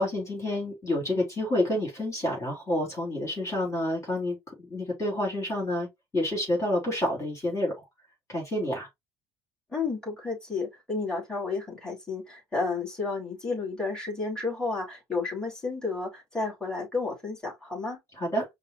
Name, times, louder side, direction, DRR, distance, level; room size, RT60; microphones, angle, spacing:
voice 1, 0.0-5.9 6.1-7.7 8.3-8.9 18.2-18.4, left 1 dB, 25° left, 3.4 m, -28 dB
voice 2, 9.7-18.0, left 3 dB, 5° left, 3.4 m, -32 dB
5.3 x 2.6 x 2.9 m
hypercardioid pair, 80°, 12 cm